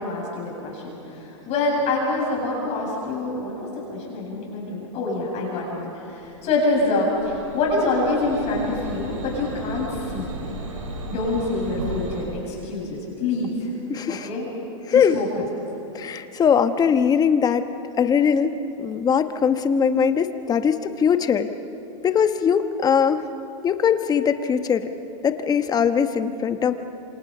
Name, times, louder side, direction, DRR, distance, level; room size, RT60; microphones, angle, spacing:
voice 1, 0.0-3.5 3.9-10.3 11.1-13.7 14.2-14.5 14.9-15.5, left 2 dB, 40° left, -3 dB, 7.7 m, -26 dB
sound 1, 6.2-12.3, right 2 dB, 80° right, 5.9 m, -35 dB
voice 2, 13.9-14.3 14.9-15.2 15.9-17.7 18.0-18.5 18.8-21.5 22.0-23.2 23.6-24.9 25.2-26.7, left 7 dB, 25° left, 9 dB, 1.2 m, -20 dB
27.5 x 27.0 x 5.6 m, 2.8 s
hypercardioid pair, 120°, 16 cm